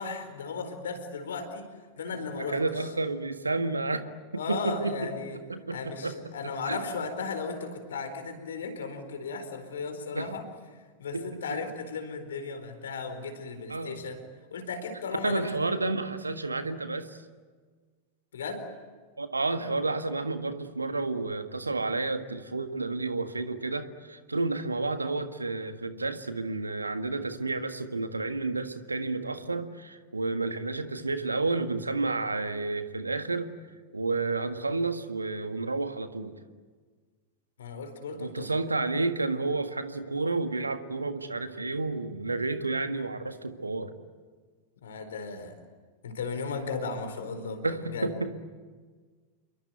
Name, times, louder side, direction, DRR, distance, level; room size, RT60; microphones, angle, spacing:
voice 1, 0.0-1.7 2.0-2.9 4.3-5.4 5.7-10.4 10.7-14.2 14.5-15.5 18.3-18.6 37.6-38.6 44.8-45.6 46.0-48.1, left 4 dB, 65° left, 8 dB, 4.3 m, -36 dB
voice 2, 2.4-4.0 4.3-5.0 5.5-6.1 6.6-6.8 10.1-10.3 11.1-11.2 13.7-14.0 15.2-17.2 19.2-33.5 33.9-36.4 38.2-43.9 47.6-48.3, right 3 dB, 80° right, 9 dB, 1.7 m, -31 dB
27.5 x 23.5 x 9.2 m, 1.5 s
figure-of-eight pair, 90°, 0 cm